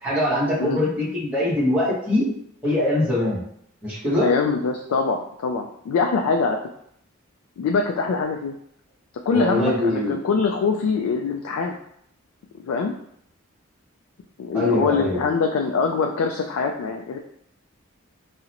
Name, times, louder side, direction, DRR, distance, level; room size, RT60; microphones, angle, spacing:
voice 1, 0.0-2.3 2.6-3.4 3.8-4.3 9.3-10.1 14.5-15.2, left 1 dB, 5° right, -8 dB, 1.1 m, -22 dB
voice 2, 4.2-6.6 7.6-8.6 9.3-11.7 12.5-12.9 14.4-17.2, left 4 dB, 90° left, 3 dB, 0.3 m, -23 dB
3.7 x 2.0 x 2.9 m, 0.70 s
head